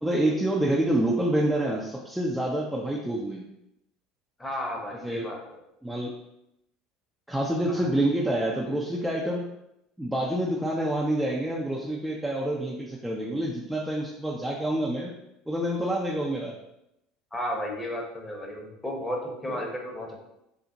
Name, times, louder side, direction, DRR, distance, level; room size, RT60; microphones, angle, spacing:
voice 1, 0.0-3.5 5.0-5.3 5.8-6.1 7.3-9.5 10.0-15.1 15.5-16.5 19.5-19.6, right 1 dB, 5° right, -4 dB, 0.5 m, -27 dB
voice 2, 4.4-5.4 7.7-7.9 17.3-20.2, equal, 15° left, -1 dB, 0.9 m, -33 dB
3.9 x 2.1 x 2.7 m, 0.84 s
hypercardioid pair, 70°, 0 cm